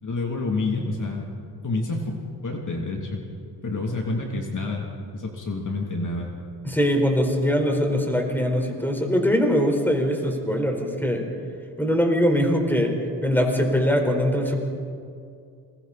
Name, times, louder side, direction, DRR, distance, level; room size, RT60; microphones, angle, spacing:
voice 1, 0.0-1.3 1.6-2.1 2.4-3.2 3.6-4.9 5.1-6.3, left 3 dB, 45° left, 0 dB, 3.2 m, -28 dB
voice 2, 6.6-11.2 11.8-13.0 13.2-14.6, equal, 5° left, 2 dB, 4.7 m, -22 dB
28.0 x 22.5 x 4.3 m, 2.4 s
supercardioid pair, 70°, 42 cm